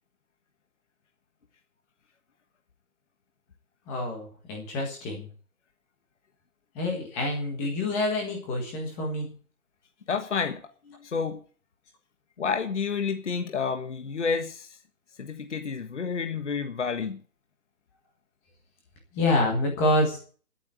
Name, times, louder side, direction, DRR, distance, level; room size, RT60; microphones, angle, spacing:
voice 1, 3.9-5.3 6.7-9.3 19.1-20.2, left 2 dB, 5° left, 1 dB, 1.5 m, -27 dB
voice 2, 10.1-11.4 12.4-14.8 15.2-17.2, left 5 dB, 50° left, 7 dB, 1.6 m, -30 dB
11.5 x 8.5 x 9.3 m, 0.39 s
hypercardioid pair, 170°, 46 cm